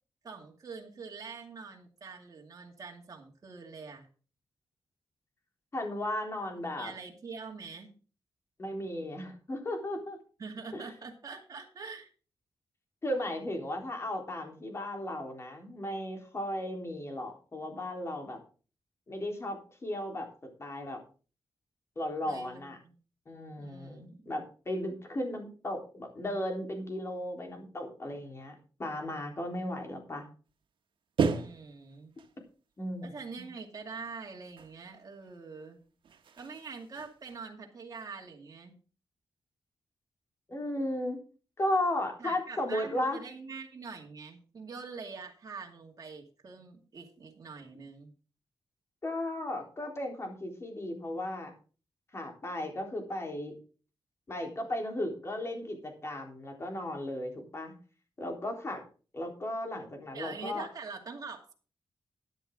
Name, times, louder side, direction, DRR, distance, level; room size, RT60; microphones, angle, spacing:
voice 1, 0.2-4.1 6.8-7.9 10.4-12.1 22.2-23.0 23.6-24.3 31.3-32.1 33.0-35.8 36.3-38.8 42.2-48.1 60.1-61.5, right 4 dB, 45° right, 0 dB, 2.4 m, -44 dB
voice 2, 5.7-6.9 8.6-10.2 10.7-10.9 13.0-18.4 19.1-20.3 20.6-21.0 22.0-22.8 23.3-30.3 32.8-33.0 40.5-41.2 41.6-43.2 49.0-51.5 52.1-53.5 54.3-57.7 58.2-58.8 59.1-60.7, left 1 dB, 30° left, 2 dB, 3.7 m, -35 dB
sound 1, 30.5-30.6 31.2-32.4 34.0-34.2 34.6-35.7 36.0-37.5, right 5 dB, 80° right, 1.4 m, -35 dB
12.5 x 10.5 x 3.7 m, 0.37 s
wide cardioid pair, 140°, 8 cm